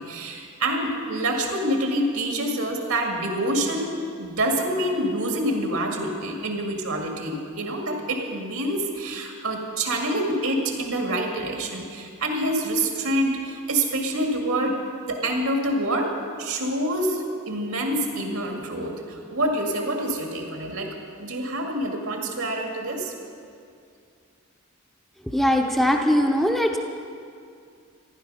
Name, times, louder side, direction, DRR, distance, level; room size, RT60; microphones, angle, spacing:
voice 1, 0.0-3.9 4.2-14.8 15.1-23.1, right 1 dB, 80° right, 2 dB, 2.1 m, -26 dB
voice 2, 25.3-26.8, equal, ahead, 2 dB, 0.7 m, -20 dB
15.0 x 11.5 x 5.6 m, 2.3 s
head